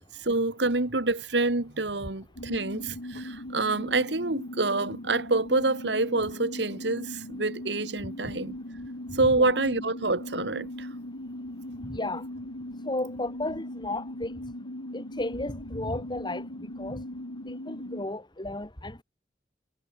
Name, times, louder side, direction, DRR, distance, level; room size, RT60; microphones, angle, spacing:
voice 1, 0.0-8.6 9.1-10.9, right 2 dB, 70° right, 2.0 m, -27 dB
sound 1, 2.4-18.0, left 1 dB, 90° left, 3.2 m, -39 dB
voice 2, 2.9-3.2 8.2-8.3 9.1-9.5 11.2-11.4 11.7-14.6 14.9-17.1 17.4-19.0, left 2 dB, 25° left, 2.6 m, -35 dB
head